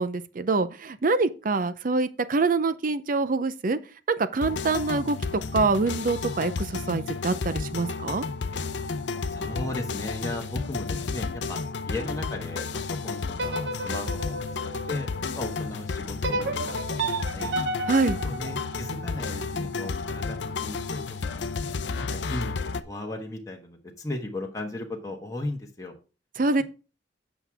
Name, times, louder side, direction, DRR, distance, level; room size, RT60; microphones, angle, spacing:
voice 1, 0.0-3.8 4.2-5.2 5.5-8.2 17.9-18.2 26.4-26.6, right 3 dB, 50° right, 0.6 m, -25 dB
sound 1, 4.4-22.8, left 4 dB, 85° left, 0.6 m, -32 dB
voice 2, 9.3-11.6 11.9-15.1 15.3-17.9 18.2-21.5 21.9-25.9, left 1 dB, 20° left, 1.2 m, -36 dB
sound 2, 13.3-15.5 16.2-19.4, right 2 dB, 85° right, 0.9 m, -32 dB
8.0 x 6.1 x 3.5 m
head